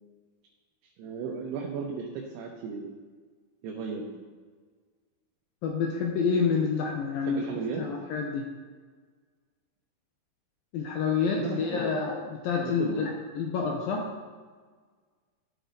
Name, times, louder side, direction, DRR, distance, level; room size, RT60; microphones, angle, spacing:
voice 1, 1.0-3.0 3.6-4.2 7.2-7.8 11.4-12.1 12.6-13.2, right 5 dB, 85° right, -1 dB, 2.9 m, -35 dB
voice 2, 5.6-7.4 7.8-8.5 10.7-14.1, left 5 dB, 80° left, 1 dB, 2.2 m, -28 dB
14.0 x 5.2 x 3.9 m, 1.5 s
omnidirectional pair, 4.7 m